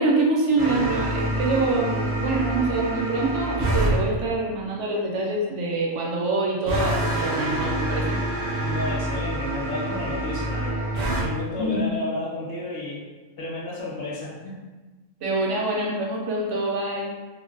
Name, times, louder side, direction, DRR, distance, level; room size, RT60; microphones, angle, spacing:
voice 1, 0.0-8.2 11.6-11.9 15.2-17.1, right 2 dB, 70° right, -2 dB, 0.9 m, -25 dB
sound 1, 0.6-4.0 6.6-11.2, right 1 dB, 90° right, 0.4 m, -26 dB
voice 2, 8.6-10.9 11.2-13.0 13.4-14.6, left 1 dB, 55° left, -6 dB, 0.8 m, -32 dB
2.5 x 2.1 x 2.4 m, 1.2 s
omnidirectional pair, 1.4 m